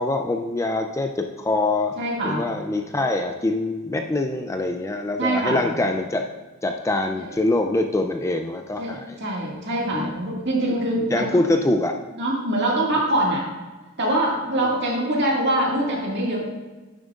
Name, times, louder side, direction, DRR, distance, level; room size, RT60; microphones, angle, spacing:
voice 1, 0.0-2.0 2.2-6.2 6.6-9.2 9.9-10.1 11.1-12.0, left 2 dB, 15° left, 5 dB, 0.4 m, -24 dB
voice 2, 2.0-2.4 5.2-5.7 7.2-7.3 8.8-8.9 9.2-11.4 12.1-13.4 14.0-16.4, right 1 dB, 55° right, -3 dB, 2.1 m, -24 dB
10.0 x 7.5 x 2.5 m, 1.2 s
head